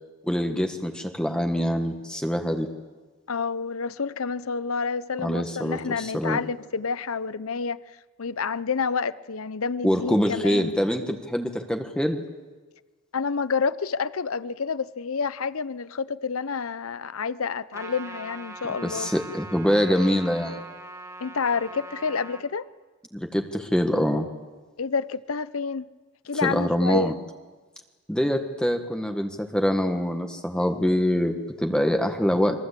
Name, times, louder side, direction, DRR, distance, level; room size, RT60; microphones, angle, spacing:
voice 1, 0.2-2.7 5.2-6.4 9.8-12.2 18.8-20.6 23.1-24.3 26.4-27.1 28.1-32.6, equal, 5° left, 1.5 m, -24 dB
voice 2, 3.3-7.8 8.2-10.8 13.1-19.1 21.2-22.7 24.8-25.9 26.3-27.1, left 5 dB, 85° left, 0.7 m, -29 dB
Trumpet, 17.7-22.4, right 2 dB, 15° right, 1.9 m, -41 dB
28.0 x 23.0 x 8.4 m
head